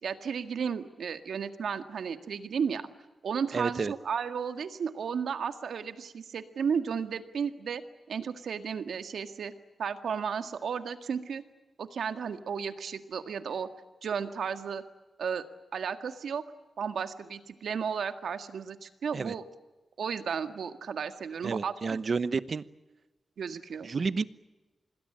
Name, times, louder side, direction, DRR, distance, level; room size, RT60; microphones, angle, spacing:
voice 1, 0.0-2.8 3.2-7.8 8.1-9.5 9.8-11.4 11.8-13.7 14.0-14.8 15.2-15.4 15.7-16.4 16.8-19.4 20.0-22.0 23.4-23.9, right 6 dB, 85° right, 8 dB, 1.8 m, -33 dB
voice 2, 3.5-3.9 19.1-19.3 21.4-22.6 23.8-24.2, right 4 dB, 50° right, 15 dB, 1.0 m, -30 dB
26.5 x 20.5 x 8.9 m, 1.1 s
wide cardioid pair, 110°, 0 cm